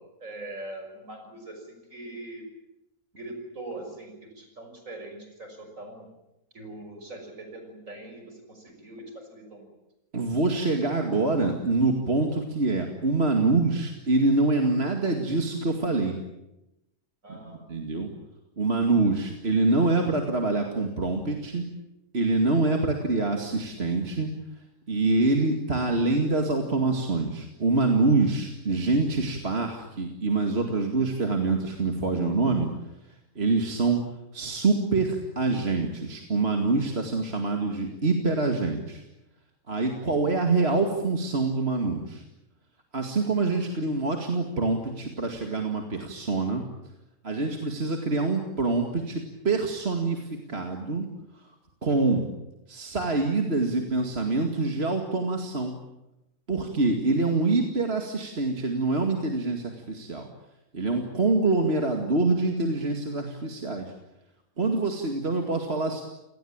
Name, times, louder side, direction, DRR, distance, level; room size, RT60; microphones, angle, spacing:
voice 1, 0.0-2.4 3.1-6.1 6.5-9.7 17.2-17.6, right 2 dB, 60° right, 4 dB, 6.4 m, -42 dB
voice 2, 10.1-16.2 17.4-18.1 18.6-21.6 22.1-24.3 24.9-32.7 33.4-34.0 34.3-39.0 39.7-42.2 42.9-46.6 47.2-51.1 51.8-52.2 52.7-55.8 56.5-60.3 60.7-63.9 64.6-66.0, right 3 dB, 45° right, 3 dB, 2.5 m, -25 dB
29.0 x 19.0 x 8.8 m, 0.92 s
omnidirectional pair, 1.5 m